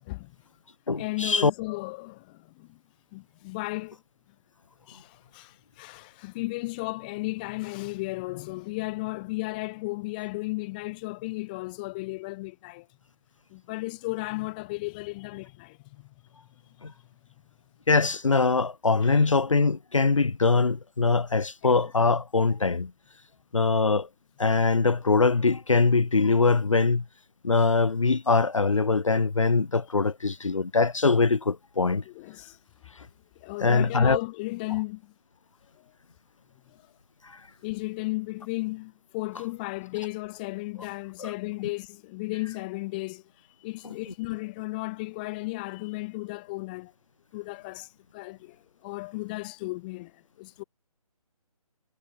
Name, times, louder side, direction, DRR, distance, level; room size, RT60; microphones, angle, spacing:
voice 1, 0.0-0.3 1.0-2.8 3.1-4.0 4.9-12.9 13.5-16.1 21.6-21.8 32.0-32.6 33.4-35.1 35.8-35.9 36.7-36.8 37.6-43.2 43.6-46.9 47.3-50.6, left 23 dB, 15° left, 1.6 m, -35 dB
voice 2, 0.9-1.5 16.8-16.9 17.9-22.9 23.5-24.1 24.4-27.0 27.4-32.0 33.6-34.2 34.7-34.8 39.3-39.5 40.8-40.9 41.2-41.3 42.4-42.5 43.8-44.1, left 4 dB, 55° left, 1.4 m, -23 dB
figure-of-eight pair, 150°, 19 cm